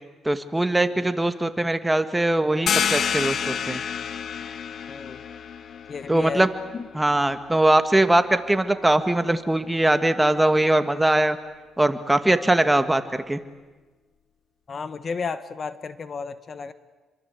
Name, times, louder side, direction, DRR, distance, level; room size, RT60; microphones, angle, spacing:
voice 1, 0.2-3.8 6.1-6.5 6.9-11.4 11.8-13.4, right 1 dB, 10° right, 9 dB, 1.9 m, -21 dB
sound 1, 2.7-8.0, left 7 dB, 60° left, 1.2 m, -29 dB
voice 2, 4.9-5.2 5.9-6.5 6.7-6.9 14.7-16.7, left 5 dB, 45° left, 12 dB, 1.4 m, -33 dB
29.0 x 24.0 x 8.3 m, 1.3 s
cardioid pair, 90°, 0 cm